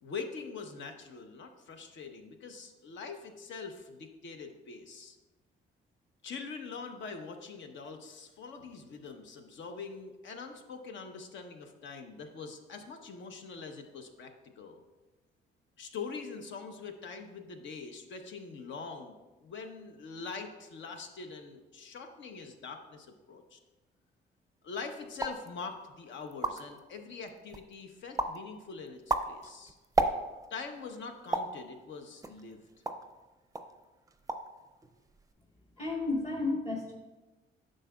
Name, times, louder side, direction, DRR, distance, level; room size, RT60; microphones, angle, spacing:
voice 1, 0.0-5.2 6.2-14.8 15.8-23.6 24.6-29.8 30.5-32.6, left 5 dB, 70° left, 5 dB, 0.9 m, -43 dB
sound 1, 25.1-25.5 26.0-26.1 26.3-26.8 27.3-27.7 28.2-28.4 28.9-30.5 31.3-31.6 32.2-33.1 33.5-33.7 34.1-34.6 34.8-35.3, right 3 dB, 15° right, 0.5 m, -32 dB
voice 2, 35.8-36.9, left 3 dB, 30° left, -2 dB, 1.2 m, -32 dB
9.8 x 6.5 x 2.3 m, 1.1 s
cardioid pair, 90°, 20 cm